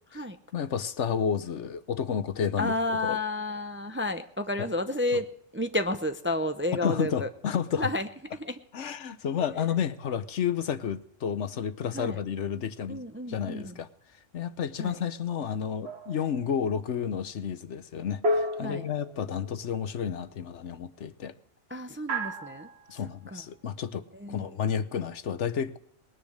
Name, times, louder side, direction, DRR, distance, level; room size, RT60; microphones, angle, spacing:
voice 1, 0.5-2.7 3.0-3.2 5.1-5.2 6.8-7.9 8.7-13.9 14.3-21.3 22.9-25.8, left 8 dB, 70° left, 11 dB, 1.2 m, -31 dB
voice 2, 2.6-5.3 5.5-7.3 7.8-8.6 9.4-9.5 11.9-12.2 12.9-13.8 14.8-15.0 18.6-18.9 21.7-22.7 23.3-23.4 24.1-24.4, left 1 dB, 15° right, 8 dB, 0.5 m, -31 dB
sound 1, 15.9-16.5 18.2-19.6 22.1-22.9, equal, 60° right, 1.5 m, -31 dB
20.5 x 10.5 x 6.5 m, 0.71 s
omnidirectional pair, 1.2 m